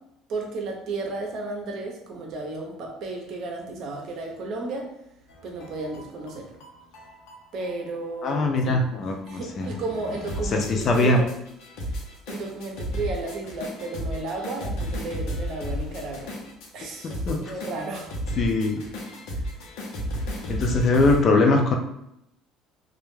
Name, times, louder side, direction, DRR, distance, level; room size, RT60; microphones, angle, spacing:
voice 1, 0.3-4.9 5.4-6.6 7.5-8.8 9.3-11.3 11.8-16.3 16.7-18.1 19.3-19.6, right 3 dB, 55° right, 0 dB, 0.6 m, -33 dB
sound 1, 5.3-21.2, equal, 80° left, 0.6 m, -34 dB
voice 2, 8.2-9.7 10.5-11.2 17.3-17.4 18.4-18.8 20.5-21.8, left 2 dB, 40° left, 3 dB, 0.4 m, -21 dB
2.3 x 2.1 x 3.1 m, 0.79 s
cardioid pair, 145°, 0 cm